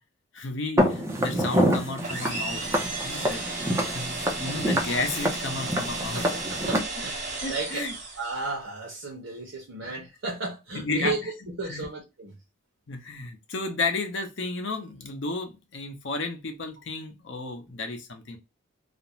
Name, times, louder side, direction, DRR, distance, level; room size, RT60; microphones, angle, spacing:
voice 1, 0.3-2.6 2.9-3.4 3.8-6.2 7.4-7.9 9.8-9.9 10.7-11.1 11.7-11.9 12.9-18.4, left 3 dB, 65° left, 0.6 m, -32 dB
Walk footsteps, 0.8-6.8, equal, 15° right, 0.5 m, -27 dB
sound 1, 2.0-8.5, right 3 dB, 35° right, 0.9 m, -34 dB
voice 2, 6.0-7.9 8.2-11.2 11.6-12.3, right 3 dB, 70° right, 0.7 m, -34 dB
2.5 x 2.1 x 2.9 m
head